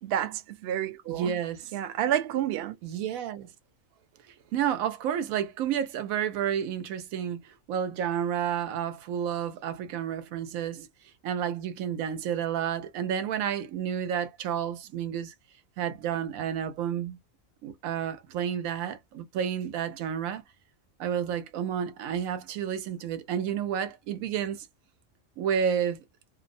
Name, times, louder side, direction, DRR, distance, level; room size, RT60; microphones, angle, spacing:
voice 1, 0.0-1.4 1.7-2.8, right 11 dB, 65° right, 0.7 m, -29 dB
voice 2, 1.1-1.7 2.8-3.5 4.5-10.9 11.2-15.3 15.8-17.2 17.6-20.4 21.0-24.7 25.4-26.0, right 8 dB, 90° right, 1.0 m, -30 dB
2.6 x 2.1 x 2.5 m
omnidirectional pair, 1.4 m